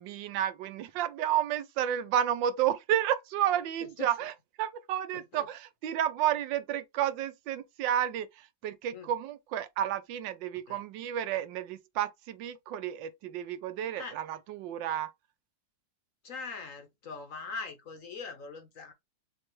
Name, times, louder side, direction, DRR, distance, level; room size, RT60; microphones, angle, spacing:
voice 1, 0.0-15.1, right 11 dB, 80° right, 1.3 m, -31 dB
voice 2, 5.1-5.5 8.9-9.1 10.7-10.8 14.0-14.2 16.2-18.9, left 4 dB, 55° left, 1.0 m, -41 dB
6.5 x 2.4 x 3.0 m
omnidirectional pair, 2.0 m